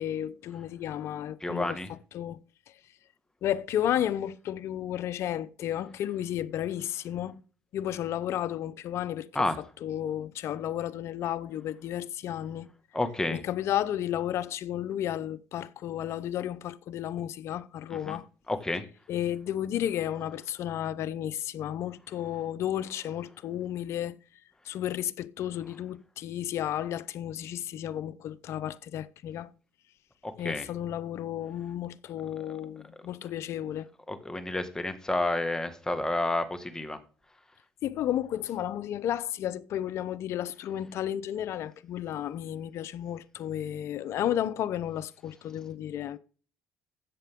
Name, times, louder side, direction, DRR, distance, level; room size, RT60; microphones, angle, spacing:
voice 1, 0.0-1.8 2.1-2.4 3.4-7.4 7.7-9.3 9.8-12.7 13.3-18.3 19.1-24.2 24.6-29.5 30.4-33.9 37.8-46.2, left 11 dB, 65° left, 0.7 m, -32 dB
voice 2, 1.4-1.9 9.4-9.6 12.9-13.4 17.9-18.2 18.5-18.8 30.2-30.7 34.1-37.0, left 2 dB, 15° left, 1.8 m, -30 dB
13.5 x 7.7 x 3.7 m
supercardioid pair, 80°, 5 cm